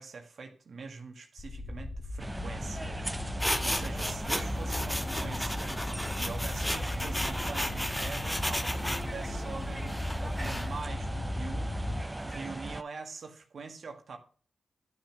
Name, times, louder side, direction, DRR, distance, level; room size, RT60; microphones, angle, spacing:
voice 1, 0.0-14.2, right 4 dB, 70° right, 1.7 m, -44 dB
sound 1, 1.4-12.0, left 1 dB, 40° left, 1.7 m, -37 dB
sound 2, 2.2-12.8, right 1 dB, 15° right, 0.5 m, -39 dB
sound 3, 3.4-9.1 9.9-10.7, equal, 10° left, 1.5 m, -34 dB
11.5 x 6.1 x 5.8 m
cardioid pair, 70°, 0 cm